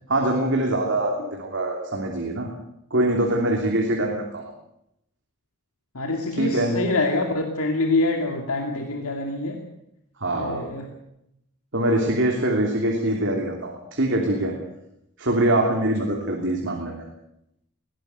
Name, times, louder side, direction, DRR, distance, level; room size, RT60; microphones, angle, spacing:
voice 1, 0.1-2.5 2.9-4.5 6.4-6.8 10.2-10.7 11.7-14.5 15.2-17.1, right 1 dB, 55° right, 1 dB, 3.2 m, -23 dB
voice 2, 5.9-9.6 10.3-10.9, left 2 dB, 75° left, 2 dB, 2.4 m, -25 dB
21.0 x 16.5 x 7.9 m, 0.81 s
head